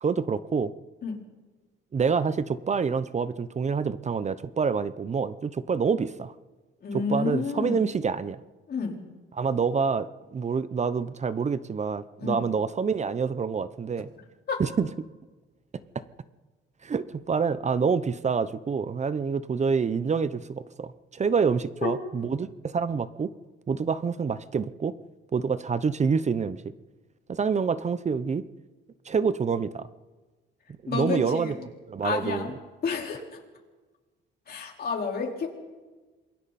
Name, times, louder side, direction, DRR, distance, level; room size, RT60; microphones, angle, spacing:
voice 1, 0.0-0.7 1.9-6.3 6.9-8.4 9.3-14.1 14.6-14.9 16.8-23.3 23.7-24.9 25.3-26.6 27.3-28.4 29.1-29.9 30.8-31.6 31.9-32.5, right 5 dB, 35° right, 14 dB, 0.8 m, -27 dB
voice 2, 6.8-7.8 8.7-9.0 12.2-12.5 14.5-14.6 21.8-21.9 30.9-31.5 32.0-32.5 32.8-33.2 34.5-35.5, left 5 dB, 50° left, -1 dB, 4.5 m, -30 dB
27.5 x 22.0 x 4.3 m, 1.3 s
cardioid pair, 90°, 20 cm